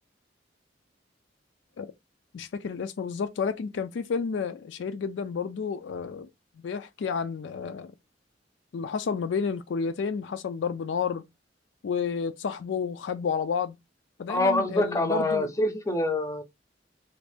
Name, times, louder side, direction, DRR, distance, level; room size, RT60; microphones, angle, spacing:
voice 1, 2.3-6.3 6.6-7.9 8.7-11.2 11.8-13.8 14.2-15.5, left 6 dB, 80° left, 0.4 m, -30 dB
voice 2, 14.3-16.4, left 1 dB, 20° left, 0.6 m, -25 dB
2.6 x 2.5 x 3.3 m
head